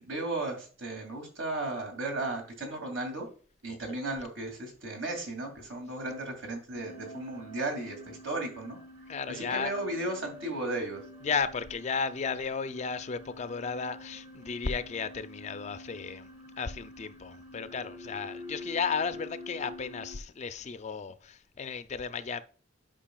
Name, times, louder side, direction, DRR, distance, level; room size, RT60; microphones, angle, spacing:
voice 1, 0.0-3.3 3.6-8.8 9.3-11.0, right 2 dB, 80° right, 2.3 m, -35 dB
sound 1, 6.7-20.2, left 1 dB, 35° right, 1.5 m, -47 dB
voice 2, 9.1-9.7 11.2-16.3 16.6-22.4, left 5 dB, 35° left, 0.4 m, -34 dB
10.0 x 5.1 x 2.3 m
head